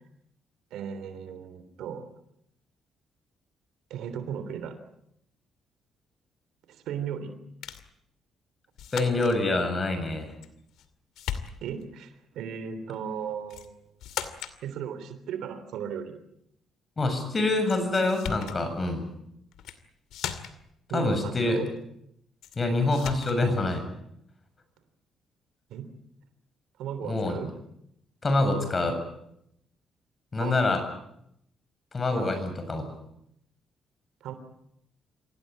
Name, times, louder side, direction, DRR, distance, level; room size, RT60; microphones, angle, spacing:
voice 1, 0.7-2.1 3.9-4.7 6.7-7.3 11.6-14.0 14.6-16.1 20.9-21.7 25.7-25.9 26.8-27.5 30.4-30.5 32.1-32.4 34.2-34.3, right 8 dB, 85° right, 11 dB, 3.2 m, -36 dB
sound 1, 7.6-7.9 8.8-9.4 10.4-10.9 11.2-11.9 13.5-13.7 14.0-14.6 17.7-17.8 18.1-18.6 19.5-19.8 20.1-20.7 22.4-22.6 22.9-23.4, left 9 dB, 85° left, 2.3 m, -37 dB
voice 2, 8.9-10.3 17.0-19.1 20.9-21.6 22.6-23.8 27.0-27.4 28.2-29.0 30.3-30.8 31.9-32.9, left 2 dB, 30° left, 8 dB, 7.3 m, -26 dB
26.5 x 17.5 x 8.8 m, 0.77 s
cardioid pair, 90°, 0 cm